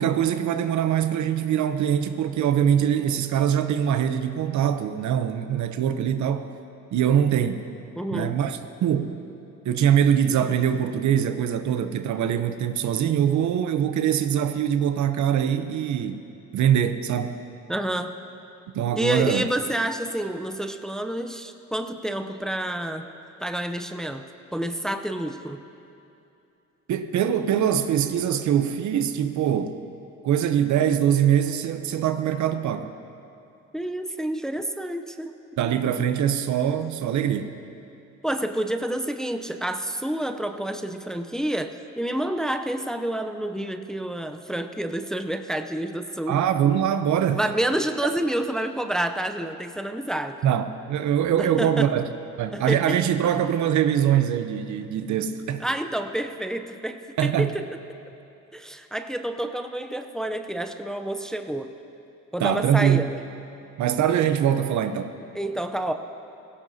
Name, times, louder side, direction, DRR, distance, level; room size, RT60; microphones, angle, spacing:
voice 1, 0.0-6.5 6.9-7.6 8.1-9.2 9.6-16.2 16.5-17.3 18.7-19.4 26.9-29.8 30.2-32.9 35.6-37.5 46.3-47.4 50.4-52.0 52.4-55.7 57.2-57.5 62.4-63.1 63.8-65.2, right 9 dB, 70° right, 10 dB, 0.7 m, -23 dB
voice 2, 8.0-8.3 17.7-18.2 19.0-23.1 23.4-24.2 24.5-25.6 33.7-35.3 38.2-46.4 47.4-50.4 51.4-51.9 52.5-53.0 55.6-57.7 58.5-61.7 62.3-63.2 65.3-65.9, right 1 dB, ahead, 6 dB, 0.6 m, -29 dB
17.0 x 16.5 x 2.8 m, 2.8 s
cardioid pair, 90°, 30 cm